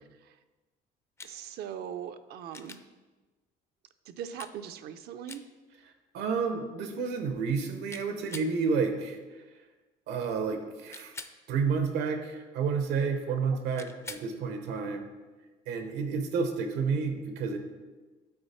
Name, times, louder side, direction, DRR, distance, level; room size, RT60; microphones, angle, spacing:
sound 1, 1.2-1.4 2.5-2.8 4.4-4.6 5.3-5.5 7.9-8.5 10.9-11.4 13.8-14.3 16.6-16.7, left 3 dB, 15° left, 0.4 m, -44 dB
voice 1, 1.2-2.8 4.1-5.4 13.7-13.9, right 9 dB, 70° right, 10 dB, 0.5 m, -40 dB
voice 2, 6.1-9.4 10.1-11.1 11.5-15.0 15.7-17.6, right 5 dB, 90° right, 6 dB, 0.9 m, -30 dB
8.7 x 4.1 x 4.2 m, 1.3 s
cardioid pair, 110°, 17 cm